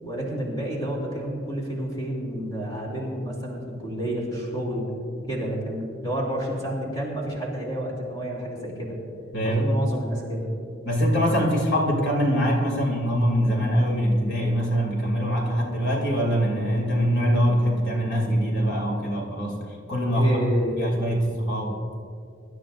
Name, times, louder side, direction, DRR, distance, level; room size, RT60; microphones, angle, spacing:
voice 1, 0.0-4.9 5.3-9.0 9.4-10.5 20.1-20.8, right 1 dB, 20° left, -3 dB, 3.1 m, -30 dB
voice 2, 9.3-9.7 10.8-20.5 20.8-21.7, equal, 60° left, -1 dB, 2.8 m, -23 dB
25.0 x 13.0 x 2.6 m, 2.4 s
head